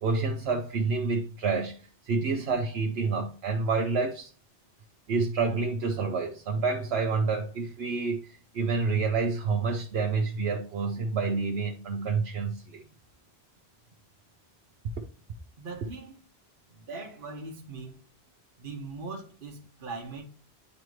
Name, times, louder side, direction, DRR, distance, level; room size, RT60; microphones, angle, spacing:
voice 1, 0.0-1.8 2.1-4.3 5.1-12.8, right 4 dB, 80° right, 1.0 m, -28 dB
voice 2, 15.6-16.2 16.7-18.0 18.6-20.2, right 3 dB, 55° right, 1.2 m, -40 dB
9.2 x 3.3 x 3.0 m
omnidirectional pair, 1.1 m